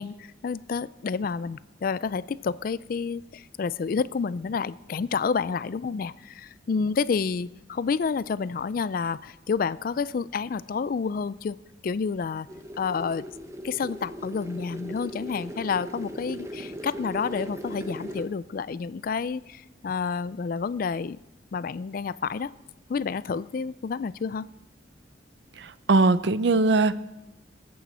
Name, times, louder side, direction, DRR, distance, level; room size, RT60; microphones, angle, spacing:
voice 1, 0.0-11.6 11.8-12.5 12.8-13.3 13.6-21.2 21.5-22.5 22.9-24.5, left 5 dB, 45° left, 18 dB, 0.3 m, -29 dB
sound 1, 12.5-18.3, equal, 15° right, 0.9 m, -38 dB
voice 2, 25.6-27.0, right 3 dB, 60° right, 15 dB, 0.5 m, -21 dB
20.5 x 8.6 x 4.3 m, 0.99 s
head